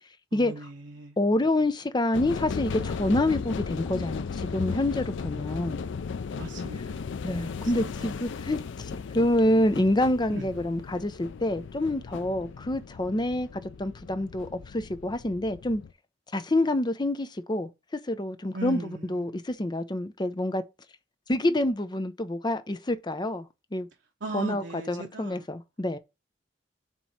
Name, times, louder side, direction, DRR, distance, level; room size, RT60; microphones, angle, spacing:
voice 1, 0.3-1.2 6.4-7.2 7.6-8.2 10.3-10.5 16.3-16.4 18.5-19.4 24.2-25.5, right 2 dB, 80° right, 0.9 m, -39 dB
voice 2, 1.2-5.8 7.2-13.5 13.8-15.8 16.3-17.7 18.1-20.6 21.3-23.9 24.3-26.0, left 1 dB, 25° left, 0.6 m, -27 dB
sound 1, 2.1-15.9, left 5 dB, 80° left, 0.4 m, -36 dB
7.2 x 3.1 x 5.4 m
head